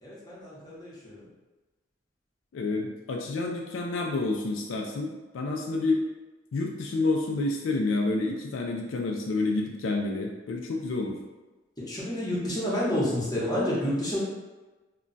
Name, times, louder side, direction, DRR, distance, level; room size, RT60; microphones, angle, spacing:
voice 1, 0.0-1.2 11.8-14.2, left 1 dB, 20° left, -7 dB, 0.9 m, -29 dB
voice 2, 2.5-6.1 6.5-11.2, left 2 dB, 80° left, 1 dB, 0.4 m, -29 dB
2.2 x 2.2 x 3.8 m, 1.2 s
head